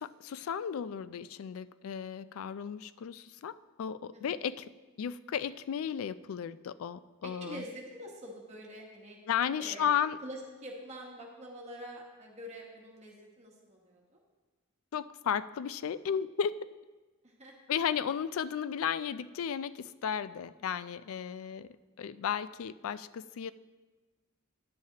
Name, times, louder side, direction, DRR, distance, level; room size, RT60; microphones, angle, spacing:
voice 1, 0.0-4.6 5.0-7.6 9.3-10.2 14.9-16.5 17.7-21.7 22.0-23.5, left 8 dB, 75° left, 16 dB, 0.3 m, -34 dB
voice 2, 7.2-9.2 9.6-14.2 17.2-17.5 21.2-21.6, equal, 30° right, -2 dB, 1.2 m, -46 dB
10.5 x 10.0 x 2.9 m, 1.3 s
head